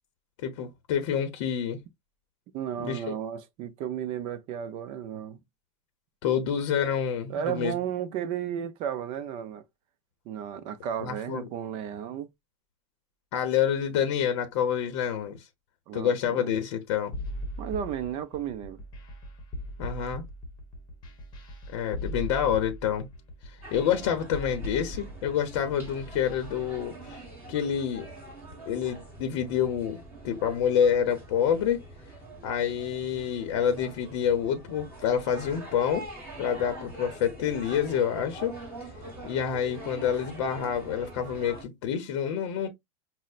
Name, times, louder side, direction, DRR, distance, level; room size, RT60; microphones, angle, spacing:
voice 1, 0.4-1.8 2.8-3.2 6.2-7.7 11.0-11.5 13.3-15.4 15.9-17.1 19.8-20.3 21.7-23.1 23.5-27.2 27.5-28.1 28.7-31.8 32.4-36.1 36.4-38.6 39.2-42.7, left 8 dB, 60° left, 0.7 m, -28 dB
voice 2, 2.5-5.4 7.3-9.6 10.3-12.3 15.9-16.5 17.6-18.8, right 9 dB, 35° right, 0.4 m, -33 dB
sound 1, 17.1-26.6, left 1 dB, 25° left, 0.9 m, -39 dB
sound 2, 23.6-41.6, right 1 dB, 10° right, 1.4 m, -44 dB
5.3 x 2.0 x 2.3 m
supercardioid pair, 170°, 17 cm